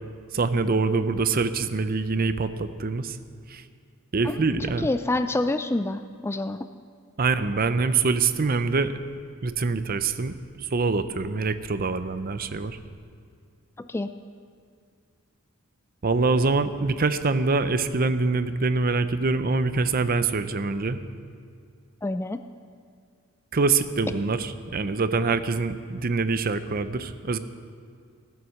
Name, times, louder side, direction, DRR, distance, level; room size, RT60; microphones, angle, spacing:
voice 1, 0.3-3.2 3.5-3.6 4.1-4.9 7.2-8.9 9.4-10.3 10.7-12.8 16.0-21.0 23.5-27.4, right 4 dB, 45° right, 12 dB, 0.6 m, -24 dB
voice 2, 4.8-6.6 13.8-14.1 22.0-22.4, left 2 dB, 10° left, 10 dB, 0.3 m, -27 dB
16.5 x 9.4 x 6.5 m, 2.1 s
head